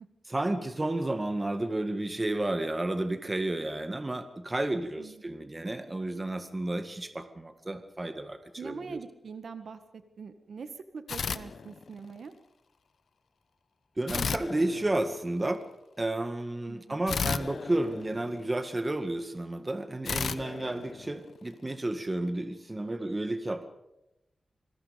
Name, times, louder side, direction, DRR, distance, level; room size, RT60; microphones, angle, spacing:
voice 1, 0.3-9.0 14.0-15.6 16.0-23.7, right 1 dB, 20° right, 8 dB, 1.9 m, -32 dB
voice 2, 8.6-12.3 16.7-17.0, right 5 dB, 80° right, 9 dB, 1.8 m, -43 dB
sound 1, 11.1-12.2 14.1-15.5 17.1-18.8 20.0-21.6, left 5 dB, 80° left, 1.0 m, -34 dB
27.0 x 21.5 x 5.3 m, 0.89 s
wide cardioid pair, 140°, 0 cm